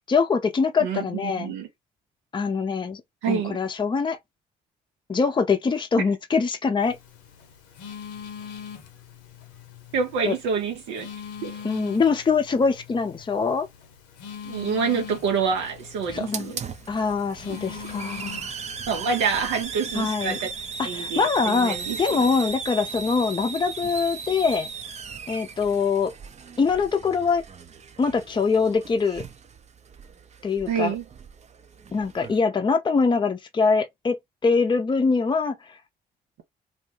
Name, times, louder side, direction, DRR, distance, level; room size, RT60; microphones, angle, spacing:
voice 1, 0.1-1.5 2.3-3.0 3.3-4.2 5.1-7.0 10.3-10.4 11.6-13.7 16.1-16.5 16.9-18.5 19.9-20.4 20.8-24.7 25.3-26.1 26.6-27.4 28.0-29.2 30.4-31.0 31.9-34.2 34.4-35.5, left 5 dB, 25° left, 0.6 m, -23 dB
voice 2, 0.8-1.7 3.2-3.6 9.9-11.1 11.4-11.6 14.4-16.6 18.9-20.5 20.8-22.3 30.7-31.0, right 6 dB, 80° right, 0.6 m, -27 dB
Telephone, 6.8-19.6, left 7 dB, 90° left, 0.7 m, -42 dB
Hiss, 14.5-32.4, right 5 dB, 40° right, 0.6 m, -37 dB
2.7 x 2.1 x 3.2 m
hypercardioid pair, 55°, 18 cm